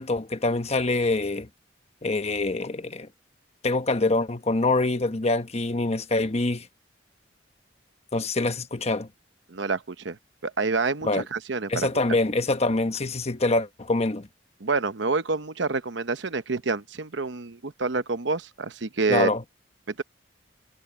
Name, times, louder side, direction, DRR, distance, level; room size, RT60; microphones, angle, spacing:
voice 1, 0.0-1.5 2.0-3.1 3.6-6.7 8.1-9.1 11.0-11.2 11.7-14.3 19.1-19.4, left 2 dB, 35° left, 1.1 m, -25 dB
voice 2, 9.5-10.2 10.4-11.9 14.6-19.3, right 3 dB, 65° right, 0.9 m, -27 dB
head